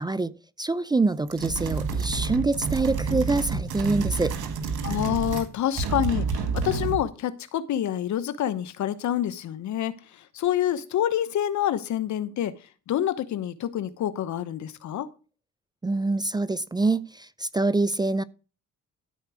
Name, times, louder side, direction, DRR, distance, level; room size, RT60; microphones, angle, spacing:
voice 1, 0.0-4.4 15.8-18.2, right 3 dB, 15° right, 0.4 m, -25 dB
sound 1, 1.3-5.5 5.8-7.1, right 4 dB, 85° right, 1.8 m, -29 dB
voice 2, 4.8-10.0 10.3-12.6 12.9-15.1, left 11 dB, 70° left, 1.0 m, -27 dB
13.0 x 4.6 x 6.2 m
cardioid pair, 90°, 30 cm